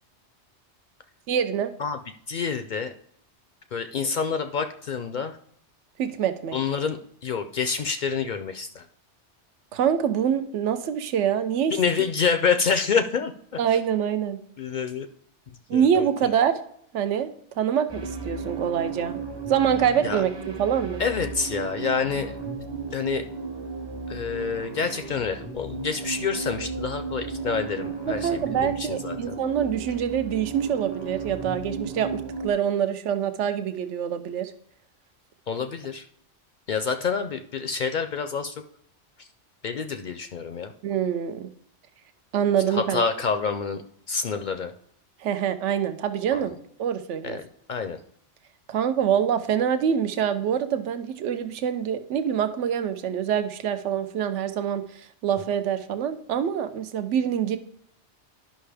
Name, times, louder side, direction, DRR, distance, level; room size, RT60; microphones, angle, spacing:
voice 1, 1.3-1.7 6.0-6.6 9.7-11.8 13.6-14.4 15.7-16.6 16.9-17.3 17.6-19.2 19.5-20.3 20.6-21.0 28.1-34.5 40.8-41.5 42.3-43.0 45.2-46.5 46.8-47.4 48.7-57.6, right 8 dB, 85° right, 10 dB, 1.0 m, -25 dB
voice 2, 2.3-2.9 3.7-5.4 6.5-8.8 11.7-13.3 13.7-13.8 14.6-15.1 15.7-16.1 20.0-20.2 21.0-22.3 22.9-23.3 24.1-29.3 35.5-36.0 36.7-38.5 39.6-40.7 42.7-43.8 44.1-44.7 46.3-46.5 47.2-47.4 47.7-48.0, left 5 dB, 60° left, 8 dB, 0.5 m, -27 dB
sound 1, 17.9-32.5, right 4 dB, 25° right, 0.7 m, -34 dB
11.5 x 5.6 x 3.4 m, 0.66 s
omnidirectional pair, 1.2 m